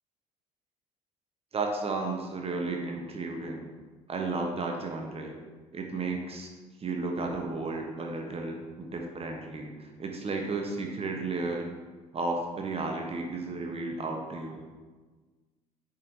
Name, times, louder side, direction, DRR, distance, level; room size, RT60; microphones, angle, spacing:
voice 1, 1.5-3.7 4.1-5.4 5.7-6.5 6.8-11.7 12.1-14.6, right 3 dB, 30° right, 2 dB, 1.0 m, -33 dB
9.2 x 5.4 x 2.7 m, 1.4 s
figure-of-eight pair, 55°, 19 cm